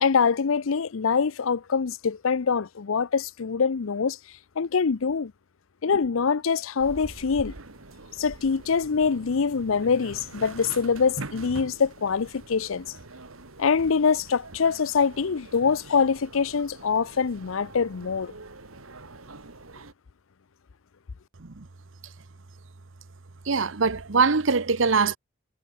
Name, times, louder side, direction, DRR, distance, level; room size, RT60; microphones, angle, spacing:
voice 1, 0.0-4.2 4.6-5.3 5.8-7.5 8.2-12.9 13.6-18.3, left 5 dB, 75° left, 0.6 m, -24 dB
sound 1, 6.8-19.9, right 2 dB, 90° right, 2.4 m, -44 dB
voice 2, 23.5-25.2, right 4 dB, 65° right, 1.0 m, -23 dB
head